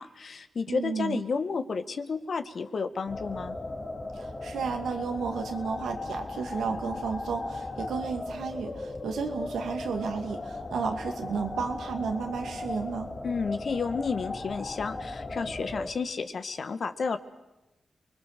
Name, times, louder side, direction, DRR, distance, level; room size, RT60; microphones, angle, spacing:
voice 1, 0.0-3.6 13.2-17.2, left 5 dB, 65° left, 10 dB, 1.5 m, -31 dB
voice 2, 0.7-1.2 4.1-13.1, right 5 dB, 85° right, 5 dB, 2.3 m, -33 dB
sound 1, 3.1-15.9, left 2 dB, 50° left, 2.7 m, -37 dB
29.0 x 21.0 x 6.7 m, 1.0 s
cardioid pair, 45°, 0 cm